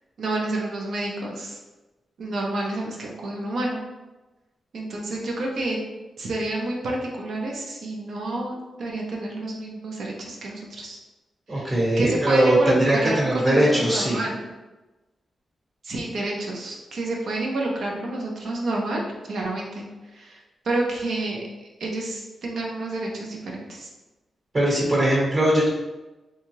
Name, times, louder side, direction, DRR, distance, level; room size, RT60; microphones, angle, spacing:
voice 1, 0.2-1.6 2.2-3.8 4.7-5.8 6.2-11.0 11.5-11.7 12.0-14.5 15.8-19.0 19.3-19.8 20.1-21.4 21.8-23.9, right 2 dB, 75° right, -1 dB, 0.6 m, -29 dB
voice 2, 11.5-14.2 24.5-25.7, right 1 dB, 40° right, -5 dB, 1.1 m, -20 dB
2.8 x 2.3 x 3.0 m, 1.1 s
cardioid pair, 80°, 0 cm